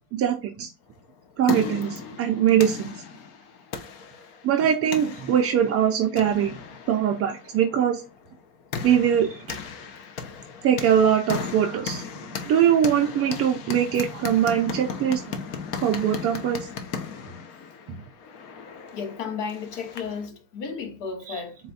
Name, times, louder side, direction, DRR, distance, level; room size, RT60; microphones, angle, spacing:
voice 1, 0.1-0.7 1.4-2.9 4.4-6.6 6.9-8.0 8.8-9.4 10.6-12.0 12.5-15.2 15.8-16.6 17.9-18.0 21.3-21.4, right 9 dB, 30° right, 0.4 m, -22 dB
sound 1, 1.0-20.3, left 6 dB, 50° left, 0.8 m, -37 dB
voice 2, 18.9-21.6, left 5 dB, 70° left, 1.1 m, -33 dB
4.2 x 2.3 x 4.0 m
supercardioid pair, 145°, 49 cm